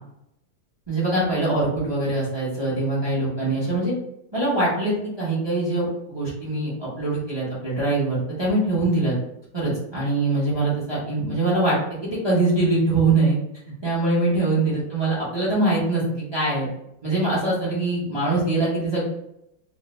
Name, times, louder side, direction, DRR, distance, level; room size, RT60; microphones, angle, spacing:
voice 1, 0.9-3.9 4.3-9.2 9.5-13.4 13.8-16.7 17.0-19.0, right 2 dB, 20° right, -8 dB, 0.8 m, -23 dB
3.3 x 2.2 x 3.2 m, 0.81 s
omnidirectional pair, 2.2 m